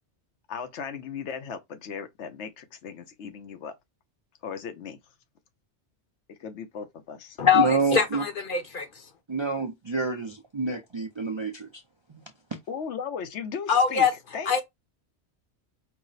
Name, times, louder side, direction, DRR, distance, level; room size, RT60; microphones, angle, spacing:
voice 1, 0.5-3.7 4.4-5.0 6.3-7.4 12.7-14.1 14.3-14.6, left 6 dB, 80° left, 1.0 m, -37 dB
voice 2, 7.5-8.3 9.3-11.8 12.1-12.6, right 4 dB, 40° right, 0.4 m, -28 dB
voice 3, 8.5-8.9 13.7-14.1 14.5-14.6, left 7 dB, 50° left, 0.9 m, -21 dB
4.7 x 2.1 x 3.9 m
omnidirectional pair, 1.2 m